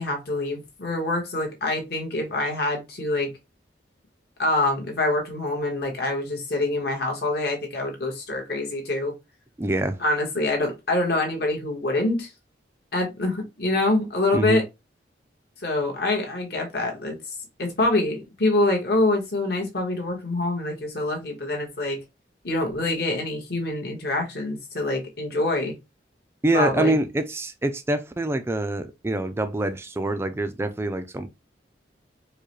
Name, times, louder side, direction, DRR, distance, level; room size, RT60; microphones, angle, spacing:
voice 1, 0.0-3.3 4.4-9.1 10.0-12.3 12.9-14.6 15.6-17.2 17.6-22.0 22.4-25.7 26.5-27.0, left 2 dB, 60° left, 1.4 m, -25 dB
voice 2, 9.6-10.0 14.3-14.6 26.4-31.3, right 1 dB, 15° right, 0.3 m, -25 dB
4.6 x 2.2 x 3.1 m
head